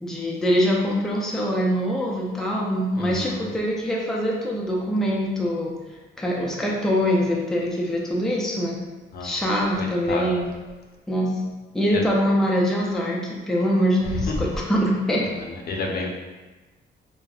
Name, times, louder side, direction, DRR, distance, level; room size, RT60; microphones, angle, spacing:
voice 1, 0.0-5.7 6.2-8.7 9.2-10.5 11.1-11.4 11.7-15.2, equal, ahead, -3 dB, 0.4 m, -23 dB
voice 2, 3.0-3.4 9.1-9.3 9.8-10.3 15.7-16.1, left 3 dB, 50° left, -1 dB, 0.5 m, -30 dB
3.3 x 2.1 x 2.3 m, 1.2 s
cardioid pair, 90°, 20 cm